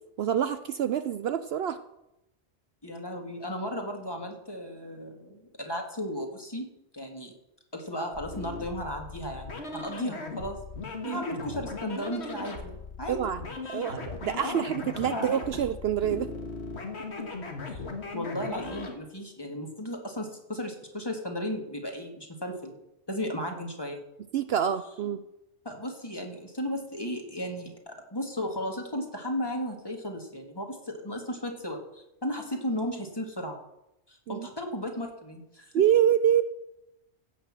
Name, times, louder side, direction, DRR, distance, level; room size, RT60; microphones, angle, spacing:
voice 1, 0.2-1.8 11.0-11.2 13.1-13.4 13.7-16.3 24.3-25.2 34.3-34.5 35.7-36.4, right 9 dB, 65° right, 12 dB, 0.8 m, -26 dB
voice 2, 2.8-6.7 6.9-7.3 7.7-10.6 11.0-13.2 13.7-13.8 14.4-14.6 15.1-15.6 16.1-16.2 17.7-17.8 18.1-22.8 23.1-24.0 25.7-33.6 34.1-35.8, equal, 20° left, 2 dB, 2.0 m, -35 dB
sound 1, 8.1-18.9, left 3 dB, 65° left, 1.9 m, -38 dB
15.5 x 5.9 x 7.4 m, 0.88 s
omnidirectional pair, 1.2 m